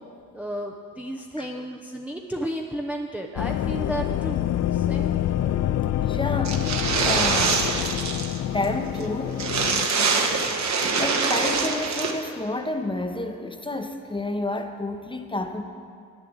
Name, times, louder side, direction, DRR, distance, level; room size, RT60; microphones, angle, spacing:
voice 1, 0.3-5.2, right 1 dB, 5° right, 0 dB, 0.8 m, -33 dB
sound 1, 3.4-9.9, left 11 dB, 45° left, 0.5 m, -26 dB
voice 2, 5.4-7.9 8.4-10.0 11.0-15.6, left 2 dB, 15° left, 6 dB, 1.0 m, -31 dB
sound 2, 6.4-8.4 8.6-8.7 9.0-9.1 9.4-12.1, right 4 dB, 45° right, 1.4 m, -24 dB
9.0 x 7.3 x 8.0 m, 2.2 s
supercardioid pair, 65°, 38 cm